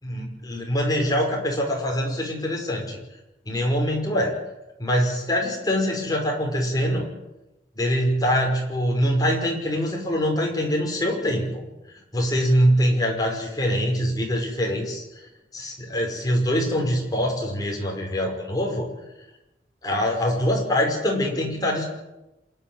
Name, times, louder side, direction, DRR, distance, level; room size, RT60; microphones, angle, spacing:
voice 1, 0.0-3.0 3.5-4.4 4.8-7.1 7.8-11.6 12.1-15.0 15.5-18.9 19.8-21.8, equal, 20° left, 0 dB, 5.4 m, -24 dB
27.5 x 11.5 x 9.1 m, 0.94 s
head